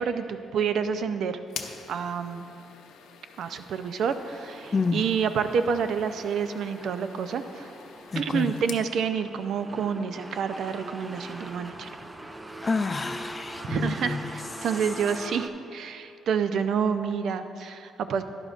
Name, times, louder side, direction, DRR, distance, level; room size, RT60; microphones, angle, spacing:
voice 1, 0.0-1.4 1.9-2.5 3.4-7.7 8.2-11.9 13.6-18.2, right 6 dB, 70° right, 10 dB, 0.5 m, -28 dB
sound 1, 1.5-8.9, left 7 dB, 85° left, 0.6 m, -46 dB
sound 2, 4.0-15.5, right 1 dB, 15° right, 0.6 m, -42 dB
voice 2, 4.7-5.0 8.1-8.5 12.6-14.2, left 4 dB, 30° left, 11 dB, 0.4 m, -28 dB
11.5 x 10.5 x 2.5 m, 2.6 s
cardioid pair, 90°, 0 cm